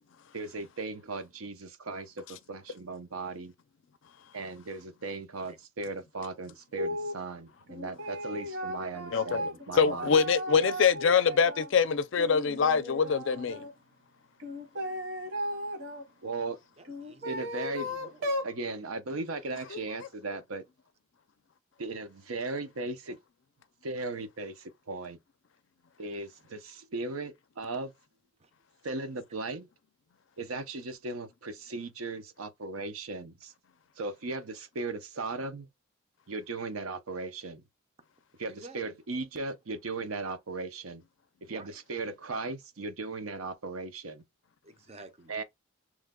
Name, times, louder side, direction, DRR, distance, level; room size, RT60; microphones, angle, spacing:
voice 1, 0.3-3.5 4.3-10.2 16.2-16.6 17.2-17.9 18.4-20.6 21.8-23.2 23.8-25.2 26.0-27.9 28.8-29.7 30.4-33.5 34.0-35.7 36.3-37.6 38.4-41.0 41.4-44.2 45.3-45.4, right 3 dB, 85° right, 0.7 m, -37 dB
sound 1, 6.8-7.2 7.7-11.7 12.1-13.7 14.4-16.0 16.8-18.5, equal, 65° right, 1.2 m, -36 dB
voice 2, 9.1-13.7 19.7-19.8, left 6 dB, 60° left, 0.4 m, -25 dB
voice 3, 16.8-17.4 17.8-18.4 28.4-28.5 38.5-38.8 41.5-41.7 44.6-45.4, right 2 dB, 30° right, 0.5 m, -51 dB
3.1 x 2.2 x 3.6 m
head